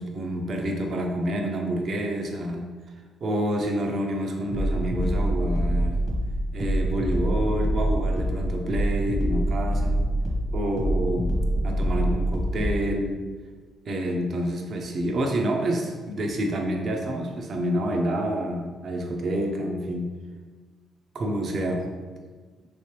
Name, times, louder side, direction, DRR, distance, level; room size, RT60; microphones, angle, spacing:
voice 1, 0.0-2.7 3.2-6.0 6.5-10.0 10.5-11.4 11.6-13.2 13.8-20.1 21.1-21.9, right 1 dB, 55° right, 2 dB, 0.5 m, -28 dB
sound 1, 4.5-12.8, right 1 dB, 35° right, 0.9 m, -25 dB
3.1 x 2.8 x 3.1 m, 1.4 s
cardioid pair, 90°, 0 cm